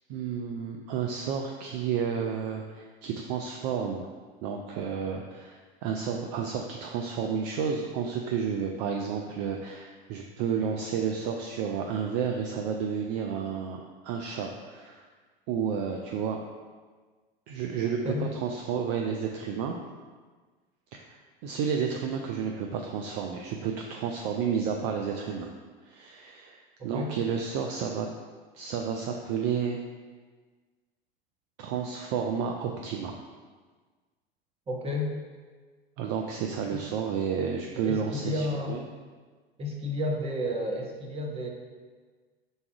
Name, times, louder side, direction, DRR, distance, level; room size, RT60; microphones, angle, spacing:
voice 1, 0.1-4.1 4.4-15.1 15.5-16.4 17.5-19.8 20.9-21.0 21.4-25.5 25.8-28.1 28.5-29.8 31.6-33.2 36.0-38.8, right 7 dB, 45° right, 2 dB, 0.4 m, -31 dB
voice 2, 34.7-35.1 36.7-36.8 37.8-38.8 39.6-41.5, left 1 dB, 20° right, 0 dB, 0.7 m, -31 dB
4.0 x 2.4 x 4.6 m, 1.4 s
figure-of-eight pair, 75°, 29 cm